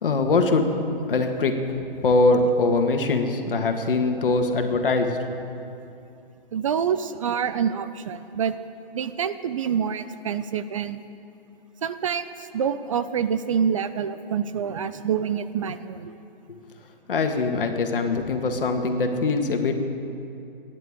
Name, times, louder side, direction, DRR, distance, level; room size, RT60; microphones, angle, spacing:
voice 1, 0.0-0.8 1.1-1.6 2.0-5.4 17.1-19.9, left 3 dB, 65° left, 5 dB, 1.9 m, -22 dB
voice 2, 6.5-8.6 8.9-11.0 11.8-16.1, right 7 dB, 35° right, 12 dB, 0.4 m, -27 dB
29.5 x 10.5 x 3.8 m, 2.7 s
hypercardioid pair, 140°, 29 cm